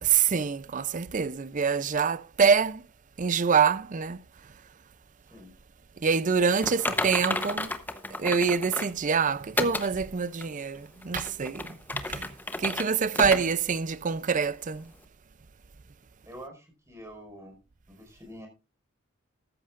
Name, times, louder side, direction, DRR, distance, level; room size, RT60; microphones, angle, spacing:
voice 1, 0.0-2.8 3.2-4.2 6.0-7.7 8.2-11.7 11.9-12.3 12.6-14.9, right 6 dB, 40° right, 0.5 m, -25 dB
Typing, 6.6-9.0 9.6-9.9 10.4-10.5 11.0-12.9 13.1-13.4 13.8-13.9 14.4-14.5, left 2 dB, 10° left, 0.9 m, -31 dB
voice 2, 16.2-17.6 17.9-18.5, equal, 15° right, 5.1 m, -46 dB
14.0 x 14.0 x 2.5 m
head